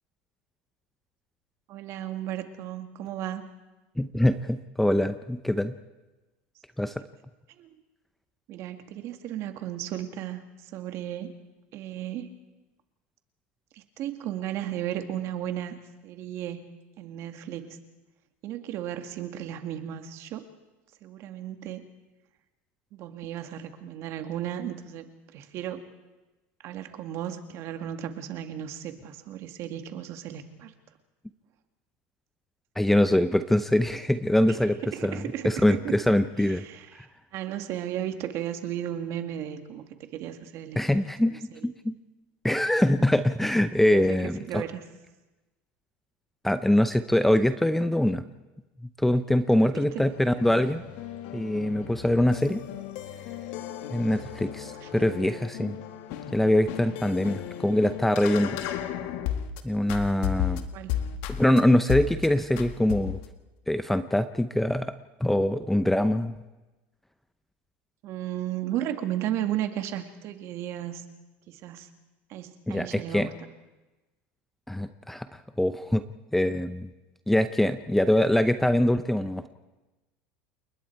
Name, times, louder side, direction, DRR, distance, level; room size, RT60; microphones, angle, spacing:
voice 1, 1.7-3.5 7.6-7.8 8.5-10.4 10.7-11.4 11.7-12.3 13.7-15.8 16.0-16.7 17.0-17.8 18.4-20.4 21.0-21.9 22.9-25.1 25.3-25.8 26.6-30.7 34.8-36.0 36.4-37.1 37.3-39.8 40.1-41.7 43.9-44.8 49.7-50.0 54.8-54.9 60.7-61.0 68.0-71.1 71.5-71.9 72.3-73.3, right 11 dB, 50° right, 7 dB, 2.1 m, -35 dB
voice 2, 4.0-5.7 6.8-6.9 32.8-35.2 35.4-36.6 36.9-37.1 40.8-42.0 42.4-44.6 46.4-48.2 49.0-50.8 51.3-52.6 53.9-55.8 56.3-58.6 59.6-60.6 61.3-63.2 63.7-64.9 65.2-66.3 72.7-73.3 74.7-75.3 75.6-76.0 76.3-76.9 77.3-79.5, left 1 dB, 5° left, 11 dB, 0.7 m, -23 dB
sound 1, 49.8-59.6 59.9-61.6 61.9-62.3 62.6-63.3, left 10 dB, 70° left, 1.8 m, -35 dB
29.0 x 20.0 x 4.7 m, 1.1 s
supercardioid pair, 130°, 6 cm